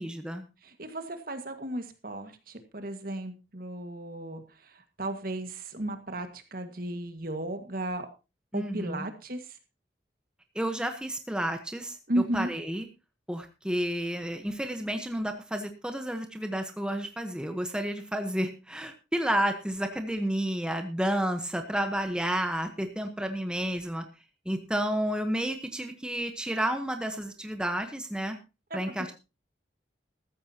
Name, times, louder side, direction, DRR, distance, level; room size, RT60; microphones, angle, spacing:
voice 1, 0.0-0.4 8.5-9.1 10.5-12.0 12.3-12.9 13.3-24.0 24.4-28.4 28.7-29.1, right 1 dB, 5° right, 6 dB, 1.1 m, -31 dB
voice 2, 0.6-8.1 8.5-9.4 12.1-12.5 28.7-28.8, right 1 dB, 55° right, 7 dB, 1.9 m, -34 dB
14.5 x 14.0 x 2.9 m, 0.29 s
head